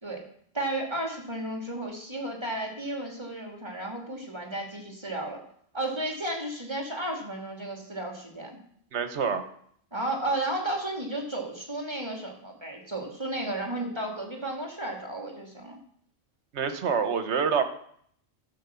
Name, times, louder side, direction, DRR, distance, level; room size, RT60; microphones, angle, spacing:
voice 1, 0.5-5.4 5.7-8.6 9.9-15.8, right 1 dB, 25° right, 0 dB, 2.4 m, -33 dB
voice 2, 8.9-9.4 16.5-17.6, right 6 dB, 75° right, 9 dB, 1.3 m, -26 dB
12.0 x 6.1 x 6.9 m, 0.64 s
omnidirectional pair, 1.2 m